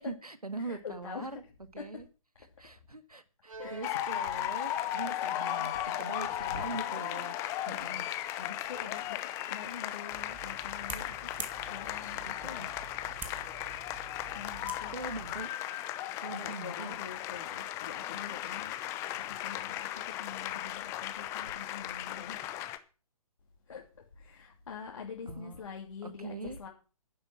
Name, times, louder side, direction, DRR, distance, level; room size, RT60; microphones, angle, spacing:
voice 1, 0.0-1.4 1.7-2.1 2.4-7.4 7.7-8.1 12.2-12.7 14.9-15.5 16.2-17.0 25.3-25.6 26.0-26.7, right 2 dB, 85° right, 12 dB, 1.8 m, -42 dB
voice 2, 0.6-1.4 1.8-2.0 3.6-3.9 5.2-6.0 6.6-6.7 7.7-8.0 8.4-9.2 9.5-12.7 14.3-14.9 16.3-18.7 19.3-22.4 23.7-23.8 24.1-26.7, left 6 dB, 60° left, -1 dB, 3.0 m, -45 dB
Bowed string instrument, 3.5-9.2, right 3 dB, 65° right, 3.1 m, -51 dB
sound 1, 3.8-22.8, left 13 dB, 15° left, 0.7 m, -36 dB
sound 2, 10.1-15.4, right 6 dB, 10° right, 1.3 m, -46 dB
10.5 x 10.5 x 6.1 m, 0.35 s
figure-of-eight pair, 140°, 19 cm